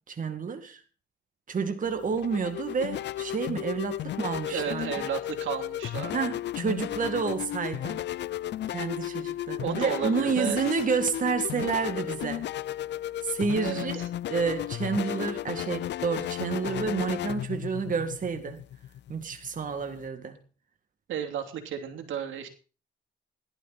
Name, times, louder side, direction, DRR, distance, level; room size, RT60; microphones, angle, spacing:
voice 1, 0.1-0.8 1.5-5.0 6.1-8.0 8.7-12.5 13.2-14.0 14.3-18.6 19.1-20.4, right 5 dB, 40° right, 2.0 m, -30 dB
sound 1, 1.8-20.1, left 13 dB, 60° left, 0.6 m, -34 dB
voice 2, 4.5-6.1 9.6-10.6 13.6-14.1 21.1-22.5, right 8 dB, 80° right, 3.0 m, -33 dB
17.0 x 12.0 x 4.1 m
cardioid pair, 90°, 20 cm